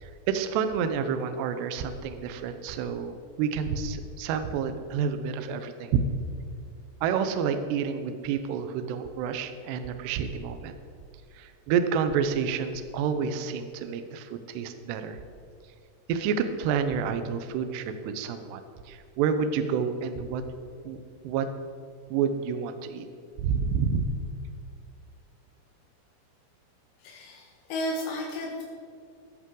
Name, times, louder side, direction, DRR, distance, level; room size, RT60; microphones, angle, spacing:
voice 1, 0.0-6.0 7.0-10.7 11.3-15.2 16.1-20.4 20.8-21.0 21.2-21.5 22.1-23.1 23.4-24.1, right 6 dB, 85° right, 8 dB, 2.4 m, -29 dB
voice 2, 27.0-28.6, left 1 dB, 90° left, -3 dB, 4.2 m, -33 dB
14.5 x 11.0 x 3.8 m, 2.3 s
omnidirectional pair, 5.9 m